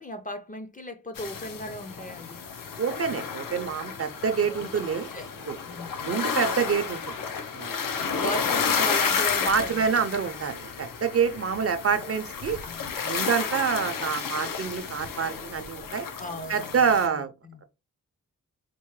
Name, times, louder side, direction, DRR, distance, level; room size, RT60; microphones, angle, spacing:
voice 1, 0.0-2.5 4.4-4.7 5.1-5.3 5.7-6.1 8.2-9.9 11.6-11.7 12.7-13.0 16.2-16.8 17.1-17.6, left 1 dB, 25° left, 0.5 m, -37 dB
sound 1, 1.2-17.1, left 6 dB, 75° left, 0.6 m, -31 dB
voice 2, 2.8-5.1 5.5-5.6 6.1-7.1 7.5-7.7 9.5-12.6 13.0-16.1 16.5-17.3, right 6 dB, 45° right, 0.5 m, -27 dB
4.3 x 2.1 x 3.1 m
wide cardioid pair, 140°, 33 cm